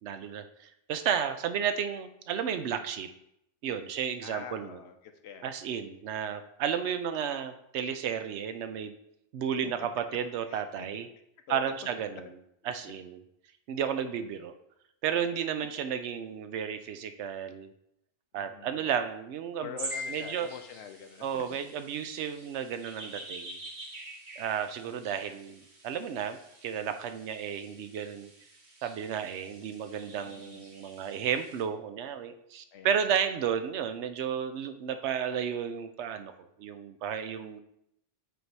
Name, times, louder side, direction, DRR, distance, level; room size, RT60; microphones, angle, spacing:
voice 1, 0.0-3.1 3.6-4.8 5.4-8.9 9.3-11.1 11.5-12.3 12.6-13.2 13.7-14.5 15.0-17.7 18.3-19.8 20.1-20.5 21.2-23.6 24.4-28.3 28.8-37.6, right 8 dB, 80° right, 9 dB, 0.9 m, -33 dB
voice 2, 4.2-4.9 5.2-5.5 9.6-9.7 10.5-10.9 11.5-11.7 18.3-18.9 19.6-21.4 30.2-30.6 32.7-33.1, left 8 dB, 75° left, 6 dB, 0.9 m, -45 dB
sound 1, 19.8-31.6, right 2 dB, 45° right, 1.1 m, -47 dB
Piano, 19.9-20.9, left 4 dB, 55° left, 1.8 m, -40 dB
8.1 x 2.7 x 4.6 m, 0.78 s
omnidirectional pair, 1.1 m